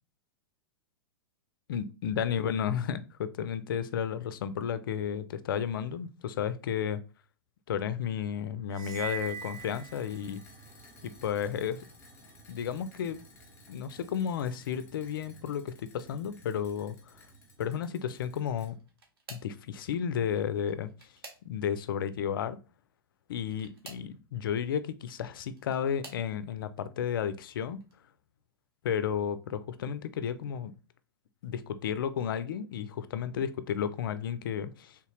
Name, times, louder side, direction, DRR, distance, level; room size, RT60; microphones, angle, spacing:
voice 1, 1.7-7.0 7.7-10.4 11.0-11.8 12.5-13.2 13.7-17.2 17.6-18.8 19.3-20.9 21.4-22.6 23.3-27.8 28.8-30.7 31.4-35.0, left 8 dB, 65° left, 0.4 m, -32 dB
sound 1, 8.7-10.6, right 7 dB, 30° right, 0.4 m, -41 dB
sound 2, 8.8-18.7, equal, 20° left, 1.3 m, -55 dB
sound 3, 18.6-19.6 20.6-21.8 23.4-24.1 25.2-26.3 27.0-27.4 27.8-27.9 29.3-29.4, right 3 dB, 75° right, 1.1 m, -51 dB
3.4 x 2.8 x 3.1 m
hypercardioid pair, 105°, 12 cm